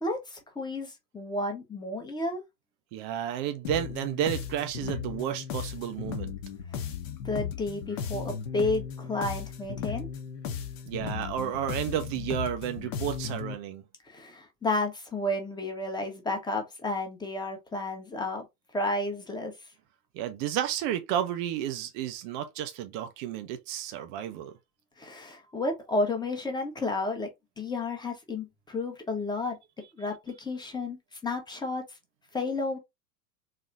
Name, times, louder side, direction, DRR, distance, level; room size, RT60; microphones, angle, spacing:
voice 1, 0.0-2.4 7.2-10.1 14.1-18.4 18.7-19.5 25.0-27.3 27.6-29.6 30.0-31.0 31.2-31.8 32.3-32.8, left 2 dB, 10° left, 1.0 m, -31 dB
voice 2, 2.9-6.3 10.9-13.8 20.1-24.5, right 11 dB, 30° right, 0.5 m, -32 dB
sound 1, 3.6-13.5, left 7 dB, 50° left, 1.0 m, -36 dB
4.0 x 2.8 x 2.4 m
figure-of-eight pair, 90°, 49 cm